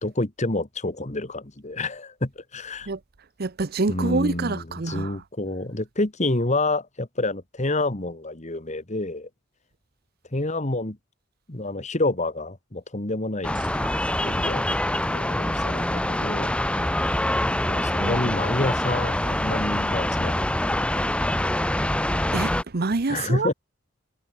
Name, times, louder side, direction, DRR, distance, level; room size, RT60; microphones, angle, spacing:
voice 1, 0.0-2.9 3.9-9.3 10.3-11.0 11.5-13.7 14.2-14.6 15.1-16.5 17.7-21.6 23.1-23.5, left 2 dB, 35° left, 1.9 m, -28 dB
voice 2, 3.4-5.2 17.9-18.3 22.3-23.5, right 3 dB, 50° right, 0.8 m, -27 dB
sound 1, 13.4-22.6, left 1 dB, 5° left, 0.7 m, -25 dB
sound 2, 13.5-17.2, right 1 dB, 25° right, 6.0 m, -48 dB
head